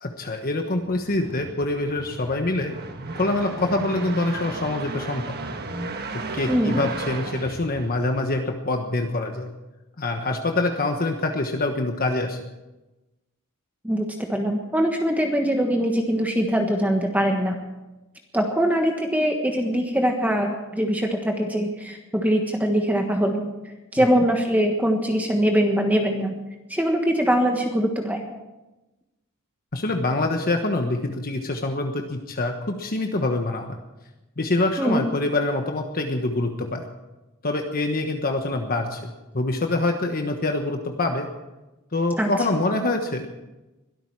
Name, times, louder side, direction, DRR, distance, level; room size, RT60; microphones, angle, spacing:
voice 1, 0.0-2.7 3.1-5.2 6.1-9.5 10.0-12.4 29.7-33.8 34.4-36.9 37.4-41.3 41.9-43.3, left 2 dB, 40° left, 4 dB, 1.2 m, -25 dB
sound 1, 0.8-8.4, right 3 dB, 45° right, 1.4 m, -35 dB
voice 2, 6.5-6.8 13.8-17.6 18.3-23.5 23.9-26.3 26.7-28.3 34.8-35.0 42.2-42.3, equal, 5° right, 2 dB, 1.4 m, -22 dB
22.0 x 13.0 x 4.8 m, 1.0 s
head